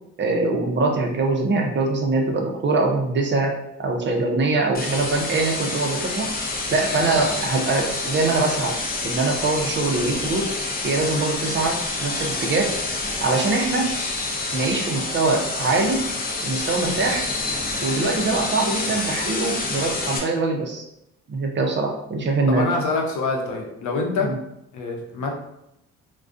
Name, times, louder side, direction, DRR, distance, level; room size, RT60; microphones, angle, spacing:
voice 1, 0.2-3.5 3.8-6.3 6.7-8.7 9.0-10.5 10.8-12.7 13.2-13.9 14.5-16.0 16.4-17.2 17.8-20.8 21.3-22.6, right 3 dB, 40° right, 1 dB, 0.5 m, -23 dB
sound 1, 4.7-20.2, left 3 dB, 30° left, 0.5 m, -28 dB
voice 2, 22.5-24.3 24.7-25.3, left 3 dB, 70° left, 1 dB, 0.6 m, -25 dB
2.3 x 2.2 x 2.5 m, 0.82 s
cardioid pair, 90°, 30 cm